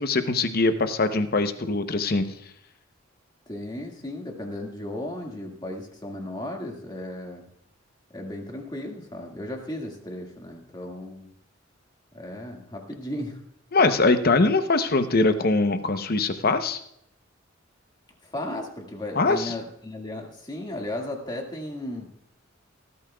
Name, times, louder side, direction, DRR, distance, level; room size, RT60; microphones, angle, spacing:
voice 1, 0.0-2.3 13.7-16.8 19.2-19.5, left 3 dB, 50° left, 10 dB, 0.8 m, -22 dB
voice 2, 3.5-7.4 8.1-11.3 12.1-13.4 18.2-22.1, left 1 dB, 20° left, 1 dB, 1.9 m, -35 dB
18.5 x 12.5 x 2.3 m, 0.75 s
head